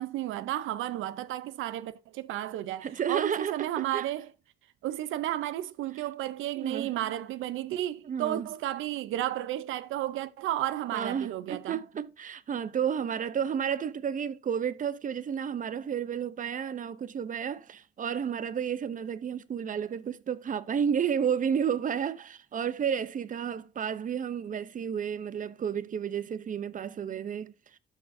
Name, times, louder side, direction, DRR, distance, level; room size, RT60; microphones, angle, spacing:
voice 1, 0.0-4.3 4.8-11.8, right 13 dB, 85° right, 0.6 m, -33 dB
voice 2, 2.8-4.1 6.6-6.9 8.0-8.5 10.9-27.8, right 8 dB, 40° right, 0.7 m, -31 dB
12.5 x 4.7 x 2.6 m
cardioid pair, 90°, 20 cm